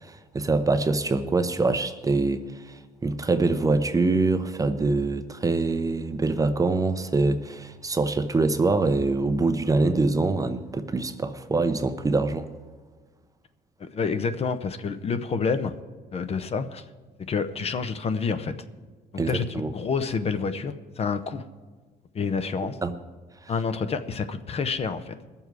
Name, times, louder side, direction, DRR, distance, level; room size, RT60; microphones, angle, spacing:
voice 1, 0.0-12.5 19.2-19.7 22.8-22.9 23.4-23.5, right 3 dB, 20° right, 0.7 m, -24 dB
voice 2, 13.8-15.7 16.1-16.8 17.2-18.5 19.1-21.4 22.1-22.8 23.5-25.1, left 5 dB, 35° left, 0.8 m, -28 dB
20.5 x 7.1 x 4.7 m
cardioid pair, 110°, 17 cm